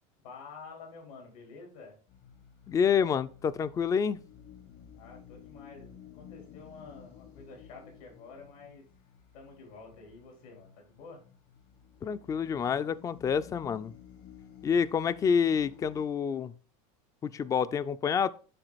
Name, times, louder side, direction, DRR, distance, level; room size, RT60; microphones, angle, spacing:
voice 1, 0.2-2.0 5.0-8.9 9.3-11.2, left 4 dB, 90° left, 4.0 m, -49 dB
sound 1, 2.1-16.0, left 8 dB, 65° left, 1.6 m, -53 dB
voice 2, 2.7-4.2 12.0-13.9 14.6-16.6 17.2-18.3, left 7 dB, 20° left, 0.4 m, -28 dB
10.0 x 3.8 x 4.0 m
supercardioid pair, 130°, 17 cm